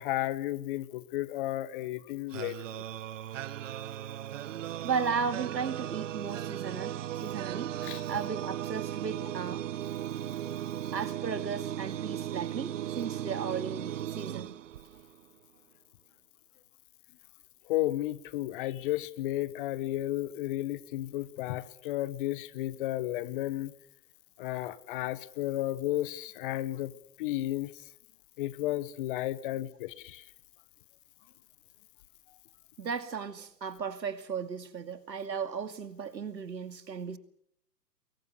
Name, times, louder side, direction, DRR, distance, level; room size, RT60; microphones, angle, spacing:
voice 1, 0.0-2.8 7.8-8.0 17.7-23.7 24.4-27.7 28.4-30.2, left 15 dB, 30° left, 1.2 m, -33 dB
sound 1, 2.3-15.2, right 11 dB, 45° right, 1.3 m, -37 dB
voice 2, 4.8-7.8 8.1-9.6 10.9-14.6 32.8-37.2, right 6 dB, 85° right, 2.6 m, -35 dB
29.0 x 22.0 x 6.8 m
hypercardioid pair, 140°, 50 cm